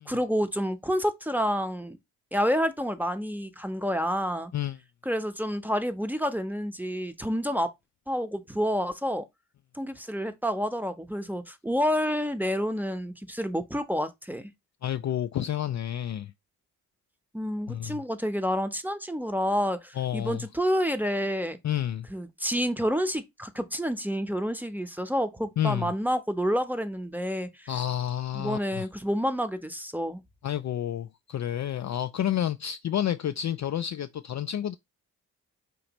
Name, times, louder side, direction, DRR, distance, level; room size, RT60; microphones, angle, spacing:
voice 1, 0.0-2.0 2.3-4.5 5.0-7.7 8.1-9.3 9.7-14.5 17.3-21.6 22.1-27.7 28.3-30.2, equal, 5° right, 0.8 m, -29 dB
voice 2, 14.8-16.3 17.7-18.0 19.9-20.5 21.6-22.1 25.6-25.9 27.7-28.9 30.4-34.8, left 10 dB, 40° left, 0.4 m, -30 dB
5.2 x 3.2 x 3.0 m
supercardioid pair, 45°, 45 cm